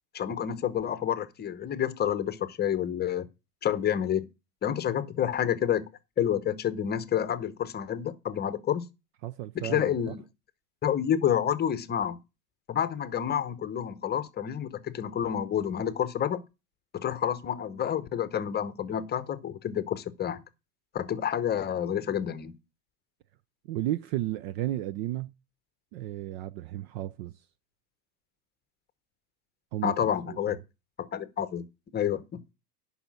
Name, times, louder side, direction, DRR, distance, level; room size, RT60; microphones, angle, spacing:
voice 1, 0.1-3.3 3.6-4.3 4.6-5.9 6.2-8.9 9.5-10.2 10.8-12.2 12.7-16.4 16.9-20.4 20.9-22.5 29.8-30.6 31.0-31.6 31.9-32.4, left 9 dB, 20° left, 0.9 m, -29 dB
voice 2, 9.2-10.2 23.7-25.3 25.9-27.4 29.7-29.9 30.3-30.4, right 14 dB, 45° right, 0.4 m, -33 dB
10.0 x 5.7 x 6.1 m
hypercardioid pair, 110°, 47 cm